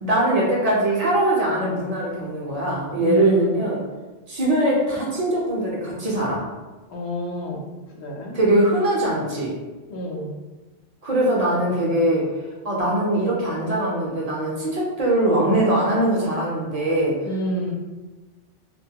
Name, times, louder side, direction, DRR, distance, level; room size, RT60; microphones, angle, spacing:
voice 1, 0.0-3.8 4.3-6.4 8.3-9.5 11.0-12.3 12.6-17.2, right 1 dB, 50° right, -5 dB, 0.5 m, -21 dB
voice 2, 3.0-3.6 6.9-7.7 7.9-8.3 9.9-10.4 17.2-17.7, equal, 85° left, 0 dB, 0.8 m, -29 dB
2.2 x 2.1 x 2.7 m, 1.2 s
omnidirectional pair, 1.1 m